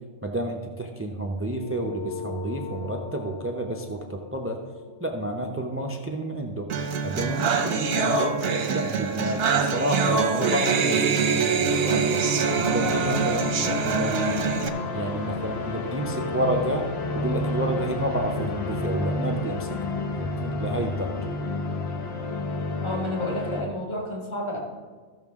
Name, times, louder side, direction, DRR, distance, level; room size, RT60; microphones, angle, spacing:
voice 1, 0.2-4.6 5.0-6.8 7.0-8.4 8.7-12.1 12.6-14.6 14.9-16.9 17.1-19.8 20.2-21.2, right 1 dB, 15° right, 3 dB, 0.4 m, -30 dB
sound 1, 1.5-6.3, left 6 dB, 80° left, 1.1 m, -40 dB
sound 2, 6.7-14.7, right 5 dB, 55° right, 0.9 m, -24 dB
sound 3, 11.7-23.6, left 3 dB, 55° left, 1.0 m, -30 dB
voice 2, 22.8-24.6, left 1 dB, 20° left, -3 dB, 1.8 m, -30 dB
14.5 x 6.4 x 3.6 m, 1.5 s
omnidirectional pair, 1.3 m